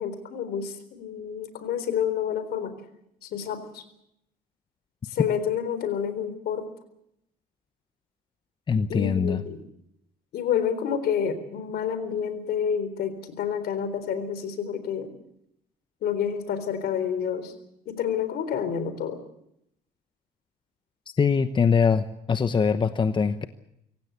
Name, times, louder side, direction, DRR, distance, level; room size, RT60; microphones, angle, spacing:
voice 1, 0.0-2.7 3.2-3.8 5.1-6.7 8.9-9.6 10.3-15.1 16.0-17.5 17.9-19.2, left 8 dB, 70° left, 11 dB, 4.0 m, -29 dB
voice 2, 8.7-9.4 21.2-23.5, left 6 dB, 30° left, 10 dB, 1.0 m, -23 dB
25.0 x 16.5 x 8.3 m, 0.77 s
cardioid pair, 110°, 17 cm